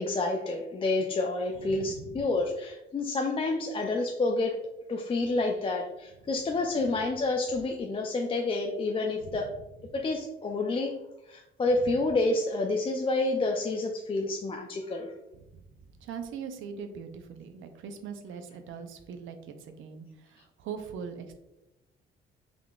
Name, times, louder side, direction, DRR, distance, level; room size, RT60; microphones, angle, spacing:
voice 1, 0.0-4.6 4.9-9.5 9.9-10.9 11.3-15.1, left 2 dB, 30° left, 1 dB, 0.4 m, -29 dB
voice 2, 1.6-2.3 9.3-9.4 15.5-15.6 16.0-21.3, right 6 dB, 80° right, 7 dB, 0.5 m, -41 dB
3.6 x 3.5 x 2.3 m, 0.95 s
cardioid pair, 90°, 20 cm